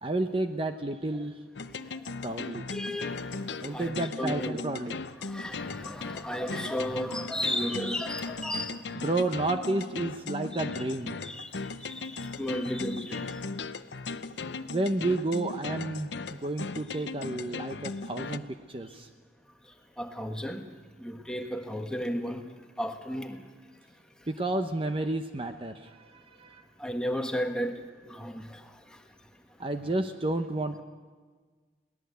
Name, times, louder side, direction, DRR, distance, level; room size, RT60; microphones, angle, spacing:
voice 1, 0.0-1.4 2.2-2.6 3.6-5.0 9.0-11.2 14.7-19.1 24.3-26.7 29.6-30.8, right 2 dB, 30° right, 7 dB, 0.8 m, -31 dB
sound 1, 1.6-18.4, left 4 dB, 70° left, 0.7 m, -38 dB
voice 2, 2.7-3.3 3.6-4.6 5.2-8.8 11.2-11.5 11.8-13.3 16.9-17.0 20.0-20.6 21.0-22.4 22.8-23.4 26.8-28.6, equal, 5° left, 4 dB, 1.4 m, -34 dB
22.0 x 18.0 x 8.2 m, 1.5 s
head